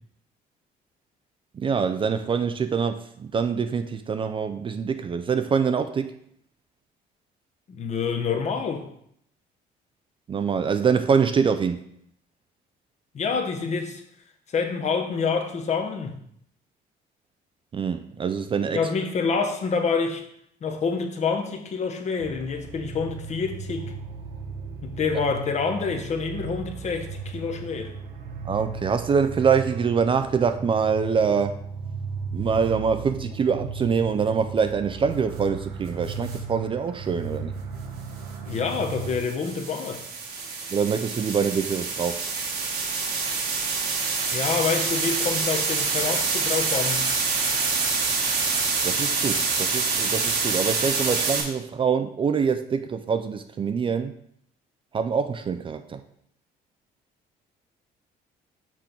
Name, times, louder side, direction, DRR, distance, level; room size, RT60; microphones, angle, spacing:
voice 1, 1.6-6.1 10.3-11.8 17.7-18.8 25.1-25.2 28.5-31.6 32.3-37.5 40.7-42.2 48.8-54.1 54.9-56.0, right 6 dB, 30° right, 0.4 m, -25 dB
voice 2, 7.7-8.9 13.1-14.0 14.5-16.1 18.7-20.2 20.6-23.9 24.8-28.0 38.5-40.1 44.3-47.0, left 5 dB, 40° left, 1.0 m, -27 dB
sound 1, 22.2-39.2, right 5 dB, 85° right, 1.1 m, -36 dB
sound 2, 36.1-36.4 38.5-51.4, right 4 dB, 70° right, 1.5 m, -26 dB
6.0 x 3.4 x 5.9 m
cardioid pair, 110°, 17 cm